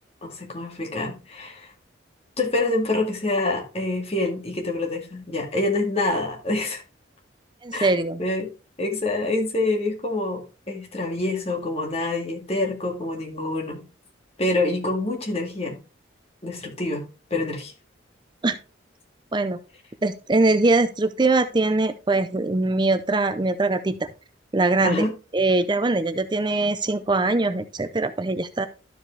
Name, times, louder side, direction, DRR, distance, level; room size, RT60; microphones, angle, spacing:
voice 1, 0.2-1.7 2.4-6.8 7.7-7.9 8.2-8.5 8.8-13.8 14.4-15.8 16.4-17.0 17.3-17.7 24.8-25.1, left 2 dB, 30° left, 2.1 m, -26 dB
voice 2, 7.6-8.2 18.4-18.6 19.3-19.6 20.0-24.1 24.5-25.1 25.3-28.7, right 2 dB, 25° right, 0.5 m, -22 dB
12.5 x 5.0 x 3.3 m
head